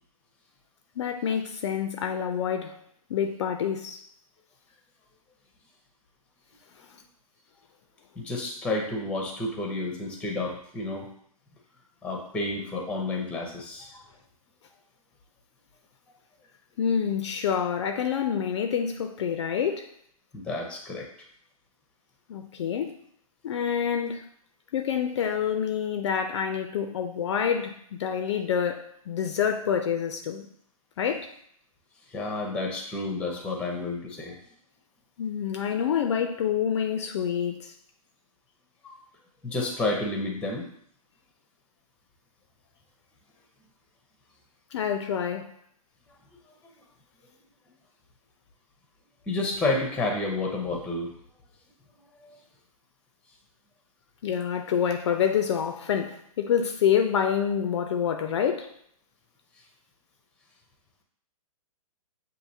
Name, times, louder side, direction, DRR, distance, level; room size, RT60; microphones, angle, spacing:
voice 1, 1.0-2.8 3.1-4.0 16.8-19.9 22.3-22.9 23.4-24.2 24.7-30.5 31.0-31.3 35.2-37.7 44.7-45.5 54.2-58.7, left 8 dB, 50° left, 0.5 m, -27 dB
voice 2, 8.2-11.1 12.0-14.0 20.3-21.1 32.1-34.4 38.8-39.0 39.4-40.6 49.3-51.1 52.2-52.4, left 2 dB, 5° left, 0.7 m, -30 dB
7.3 x 2.7 x 2.7 m
hypercardioid pair, 145°, 19 cm